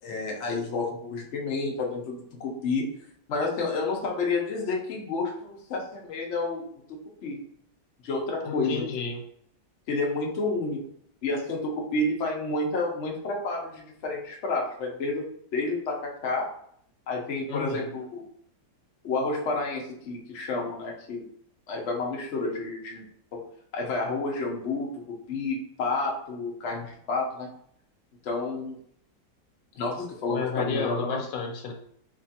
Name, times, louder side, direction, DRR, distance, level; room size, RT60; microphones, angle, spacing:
voice 1, 0.0-2.8 3.3-6.6 7.2-7.4 8.0-8.8 9.9-10.8 11.2-15.2 15.5-16.5 17.1-18.2 19.0-21.2 21.7-23.0 23.7-24.9 25.3-27.5 28.2-28.8 29.8-31.2, left 3 dB, 60° left, -1 dB, 0.8 m, -30 dB
voice 2, 8.4-9.2 17.5-17.9 30.3-31.7, left 5 dB, 80° left, 3 dB, 1.3 m, -31 dB
3.4 x 2.9 x 2.8 m, 0.68 s
omnidirectional pair, 1.9 m